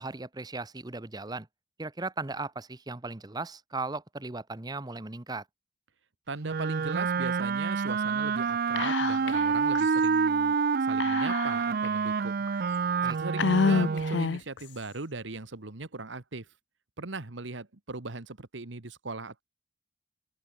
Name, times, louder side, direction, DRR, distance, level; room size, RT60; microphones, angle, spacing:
voice 1, 0.0-1.5 1.8-5.4 13.0-13.2, right 3 dB, 20° right, 0.8 m, -37 dB
voice 2, 6.3-12.4 13.2-16.5 17.0-19.4, right 3 dB, 70° right, 1.4 m, -39 dB
Wind instrument woodwind instrument, 6.4-14.3, right 5 dB, 50° right, 0.4 m, -27 dB
Whispering, 8.8-9.5 9.8-9.9 11.0-11.9 12.5-12.6 13.4-14.6, left 5 dB, 60° left, 0.4 m, -27 dB
open air
head